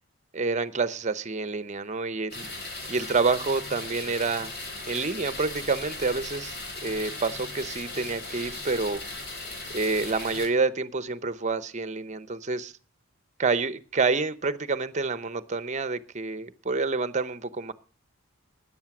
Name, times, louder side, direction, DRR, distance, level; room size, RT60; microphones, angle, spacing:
voice 1, 0.3-2.5 2.9-4.5 4.9-6.5 6.8-9.0 9.7-12.7 13.4-17.7, right 4 dB, 35° right, 0.8 m, -28 dB
sound 1, 2.3-10.5, left 2 dB, 55° left, 3.5 m, -37 dB
13.5 x 9.9 x 6.1 m
head